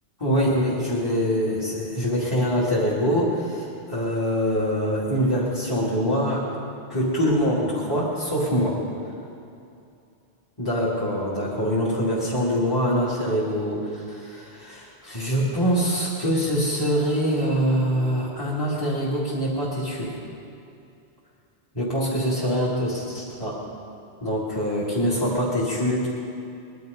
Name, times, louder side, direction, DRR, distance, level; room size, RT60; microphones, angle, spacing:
voice 1, 0.2-6.4 6.9-8.8 10.6-20.2 21.7-23.6 24.2-26.1, equal, 20° left, -8 dB, 2.6 m, -24 dB
21.5 x 11.5 x 5.3 m, 2.6 s
omnidirectional pair, 1.1 m